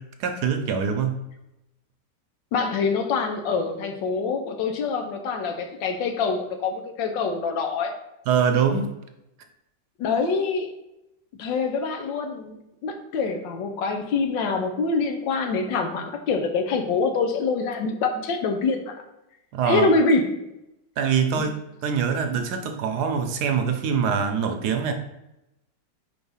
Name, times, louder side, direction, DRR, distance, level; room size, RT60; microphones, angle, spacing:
voice 1, 0.2-1.2 8.3-8.9 19.5-19.9 21.0-24.9, right 6 dB, 70° right, 6 dB, 1.1 m, -24 dB
voice 2, 2.5-7.9 10.0-10.7 11.4-18.9 19.6-20.3 21.4-21.5, left 4 dB, 80° left, 4 dB, 1.5 m, -25 dB
4.7 x 3.8 x 5.4 m, 0.89 s
omnidirectional pair, 2.0 m